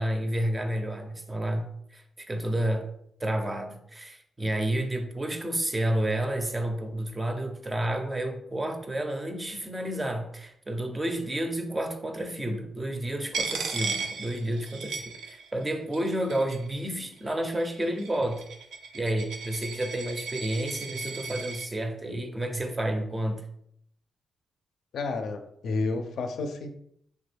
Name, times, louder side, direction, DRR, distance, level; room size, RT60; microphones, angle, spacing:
voice 1, 0.0-1.7 1.9-2.9 3.2-18.4 18.9-23.5, right 1 dB, 20° right, 5 dB, 0.4 m, -30 dB
Coin (dropping), 13.3-15.7 15.9-16.8 17.5-21.7, right 4 dB, 85° right, 0.4 m, -36 dB
voice 2, 24.9-26.7, left 3 dB, 80° left, 5 dB, 0.4 m, -31 dB
3.3 x 2.2 x 3.3 m, 0.70 s
cardioid pair, 110°, 0 cm